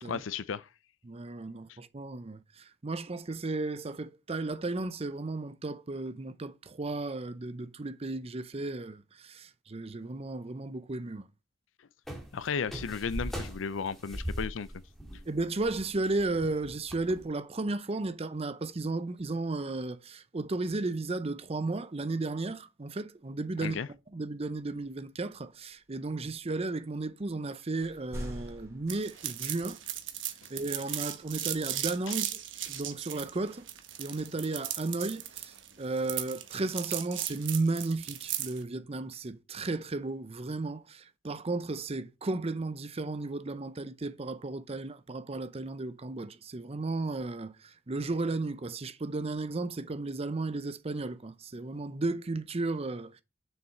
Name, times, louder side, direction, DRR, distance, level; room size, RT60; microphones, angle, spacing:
voice 1, 0.0-0.7 1.7-1.8 12.3-14.7 23.6-23.9, left 6 dB, 90° left, 0.5 m, -34 dB
voice 2, 1.0-11.3 15.3-23.8 24.1-29.8 30.5-32.4 32.7-33.7 34.0-53.2, right 2 dB, 30° right, 0.6 m, -34 dB
sound 1, 12.1-17.2, equal, ahead, 2.2 m, -39 dB
sound 2, 24.5-27.4 27.8-29.9 31.2-32.3 34.1-34.7 35.3-36.1, equal, 15° right, 3.6 m, -48 dB
sound 3, 28.9-38.6, right 12 dB, 80° right, 1.2 m, -36 dB
7.0 x 6.7 x 4.4 m
head